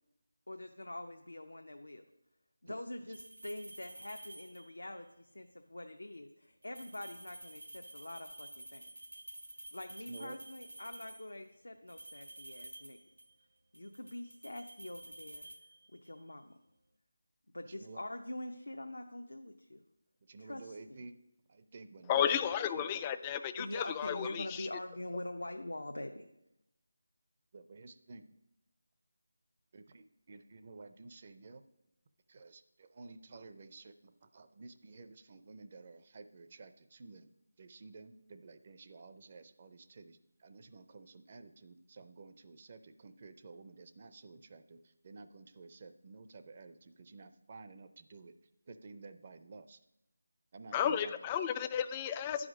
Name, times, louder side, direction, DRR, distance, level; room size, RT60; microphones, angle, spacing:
voice 1, 0.5-2.0 2.6-8.9 9.7-13.0 13.7-15.5 16.0-16.6 17.5-19.8 20.4-21.0 23.6-26.2, left 1 dB, 80° left, 4 dB, 0.6 m, -44 dB
sound 1, 3.1-4.9 6.6-11.4 11.9-13.4 13.7-16.2, right 1 dB, 80° right, 0.7 m, -51 dB
voice 2, 10.1-10.4 17.6-18.0 20.3-21.1 21.5-22.3 22.7-23.0 27.5-28.3 29.7-31.6 32.3-37.3 37.6-48.3 48.7-49.8 50.5-51.1, right 3 dB, 35° right, 10 dB, 0.5 m, -52 dB
voice 3, 22.1-24.7 50.7-52.5, left 9 dB, 15° left, 11 dB, 0.3 m, -33 dB
9.4 x 5.0 x 6.1 m, 0.86 s
figure-of-eight pair, 165°, 0 cm